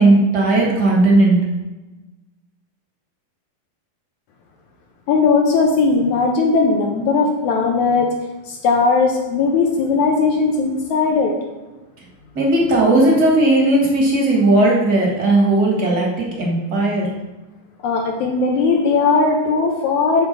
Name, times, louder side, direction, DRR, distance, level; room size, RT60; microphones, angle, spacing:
voice 1, 0.0-1.4 12.3-17.1, right 2 dB, 45° right, -2 dB, 1.4 m, -16 dB
voice 2, 5.1-8.1 8.5-11.4 17.8-20.3, left 4 dB, 75° left, 2 dB, 1.8 m, -18 dB
8.3 x 4.7 x 6.7 m, 1.1 s
omnidirectional pair, 4.2 m